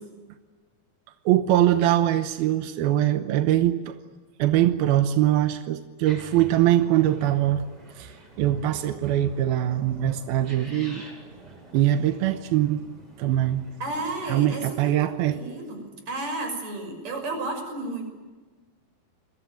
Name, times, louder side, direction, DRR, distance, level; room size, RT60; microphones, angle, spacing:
voice 1, 1.3-4.0 4.4-7.7 8.0-11.0 11.7-12.8 13.2-13.6 14.3-15.4, right 12 dB, 90° right, 8 dB, 2.9 m, -22 dB
sound 1, 6.0-14.4, right 1 dB, 25° right, 8.5 m, -48 dB
voice 2, 13.8-18.1, right 2 dB, 45° right, 5 dB, 7.3 m, -33 dB
29.5 x 22.0 x 7.7 m, 1.3 s
omnidirectional pair, 4.3 m